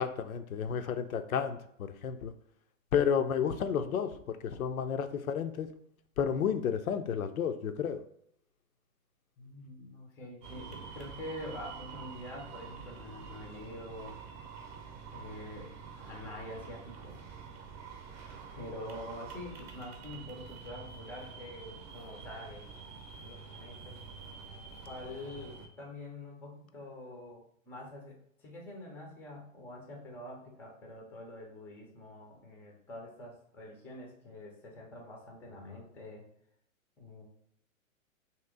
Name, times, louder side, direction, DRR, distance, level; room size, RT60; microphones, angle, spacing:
voice 1, 0.0-2.3 2.9-5.7 6.2-8.0, left 7 dB, 80° left, 8 dB, 0.5 m, -31 dB
voice 2, 9.4-14.2 15.1-17.2 18.6-22.7 23.2-24.0 24.8-36.2 37.0-37.4, left 1 dB, 5° left, 0 dB, 0.4 m, -46 dB
sound 1, 10.4-25.7, right 5 dB, 35° right, 0.7 m, -47 dB
2.9 x 2.9 x 3.5 m, 0.70 s
figure-of-eight pair, 110°, 42 cm